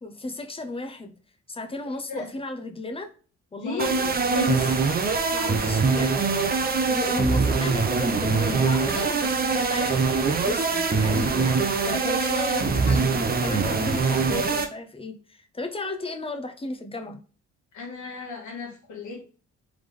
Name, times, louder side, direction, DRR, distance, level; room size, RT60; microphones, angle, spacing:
voice 1, 0.0-1.1 1.5-3.1 3.5-4.7 5.3-6.1 6.9-11.6 11.8-17.2, left 2 dB, 20° left, 0.8 m, -34 dB
voice 2, 3.6-4.0 4.3-4.6 12.6-13.0 17.7-19.2, left 3 dB, 75° left, 1.5 m, -34 dB
sound 1, 3.8-14.7, right 4 dB, 30° right, 0.7 m, -23 dB
3.6 x 3.6 x 3.2 m
cardioid pair, 90°, 30 cm